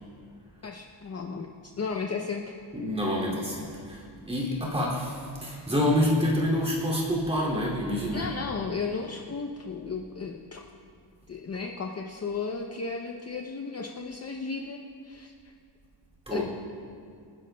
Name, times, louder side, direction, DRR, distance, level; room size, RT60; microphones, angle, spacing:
voice 1, 0.6-2.5 8.1-10.6 11.3-15.3 16.3-16.4, left 4 dB, 35° left, 1 dB, 0.6 m, -34 dB
voice 2, 2.7-8.3 16.3-16.4, left 1 dB, 15° right, -4 dB, 2.5 m, -27 dB
26.0 x 10.5 x 2.2 m, 2.4 s
wide cardioid pair, 160°, 45 cm